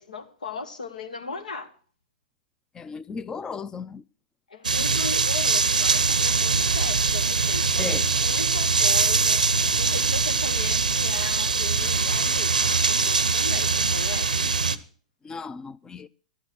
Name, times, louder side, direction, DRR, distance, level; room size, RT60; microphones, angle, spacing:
voice 1, 0.0-1.7 4.5-14.5, left 4 dB, 80° left, 1.4 m, -38 dB
voice 2, 2.7-4.0 7.8-8.1 15.2-16.1, left 5 dB, 15° left, 0.5 m, -35 dB
sound 1, 4.6-14.8, right 4 dB, 90° right, 0.6 m, -22 dB
11.0 x 8.0 x 6.2 m
hypercardioid pair, 105°, 4 cm